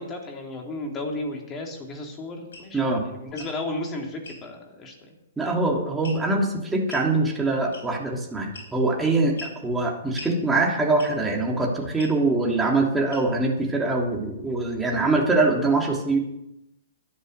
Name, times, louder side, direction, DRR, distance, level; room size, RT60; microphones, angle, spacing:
voice 1, 0.0-5.1 5.4-5.5, left 2 dB, 25° left, 2 dB, 3.3 m, -34 dB
sound 1, 2.5-2.7 3.3-3.6 4.2-4.4 6.0-6.4 6.9-7.1 7.7-8.1 8.5-8.9 9.4-9.6 10.2-10.4 11.0-11.3 12.0-12.2 13.1-13.5, left 3 dB, 75° left, 4.3 m, -41 dB
voice 2, 2.7-3.0 5.4-16.2, right 2 dB, 10° right, -1 dB, 2.9 m, -23 dB
12.5 x 9.8 x 6.7 m, 0.87 s
hypercardioid pair, 120°, 0 cm